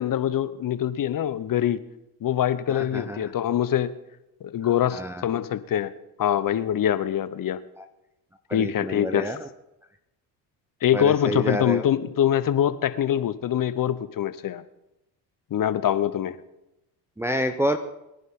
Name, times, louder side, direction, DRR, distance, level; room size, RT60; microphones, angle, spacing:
voice 1, 0.0-1.8 2.2-3.9 4.4-5.9 6.2-7.6 8.5-9.3 10.8-14.6 15.5-16.4, left 10 dB, 40° left, 15 dB, 1.0 m, -24 dB
voice 2, 2.7-3.2 4.9-5.2 7.8-7.9 8.5-9.5 10.9-11.9 17.2-17.8, equal, 5° right, 5 dB, 0.9 m, -28 dB
22.5 x 10.5 x 3.8 m, 0.90 s
hypercardioid pair, 70°, 49 cm